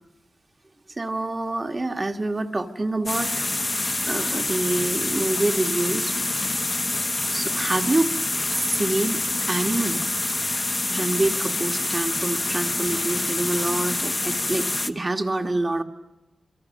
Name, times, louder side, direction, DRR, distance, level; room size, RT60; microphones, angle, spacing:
voice 1, 1.0-3.5 4.1-6.1 7.3-8.2 8.5-10.0 10.9-15.8, right 2 dB, 30° right, 6 dB, 1.6 m, -26 dB
sound 1, 3.1-14.9, left 2 dB, 25° left, 1.0 m, -26 dB
27.5 x 24.5 x 6.5 m, 1.0 s
wide cardioid pair, 80°, 0 cm